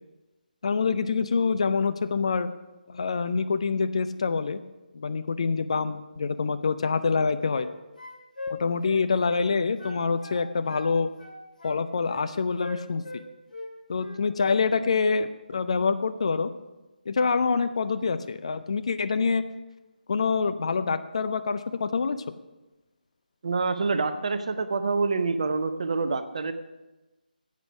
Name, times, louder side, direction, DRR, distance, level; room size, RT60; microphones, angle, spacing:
voice 1, 0.6-2.5 2.9-4.6 4.9-7.7 8.5-11.1 11.6-13.2 13.9-16.5 17.1-19.4 20.1-22.2, left 4 dB, 40° left, 11 dB, 0.5 m, -26 dB
sound 1, 7.0-7.7 8.0-9.5 9.8-10.9 11.2-12.2 12.6-13.7 14.0-14.2, left 3 dB, 65° left, 2.5 m, -40 dB
voice 2, 23.4-26.5, right 4 dB, 45° right, 10 dB, 0.8 m, -26 dB
10.0 x 8.3 x 6.0 m, 1.1 s
figure-of-eight pair, 155°, 5 cm